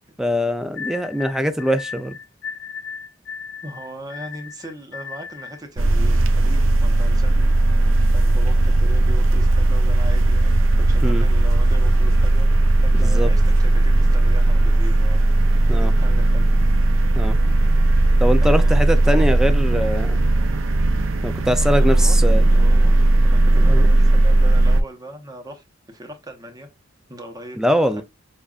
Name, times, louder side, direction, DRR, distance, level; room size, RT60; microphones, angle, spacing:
voice 1, 0.2-2.2 11.0-11.3 12.9-13.3 15.7-15.9 17.1-17.4 18.2-20.2 21.2-22.4 23.6-23.9 27.6-28.0, equal, 5° right, 0.4 m, -22 dB
sound 1, 0.7-5.6, left 6 dB, 70° left, 0.8 m, -36 dB
voice 2, 3.6-7.6 8.1-12.5 12.8-15.2 15.7-16.5 18.2-19.5 21.6-22.2 22.5-26.7 27.1-28.0, right 1 dB, 20° right, 1.0 m, -39 dB
sound 2, 5.8-24.8, right 2 dB, 85° right, 0.6 m, -16 dB
7.1 x 2.5 x 2.5 m
head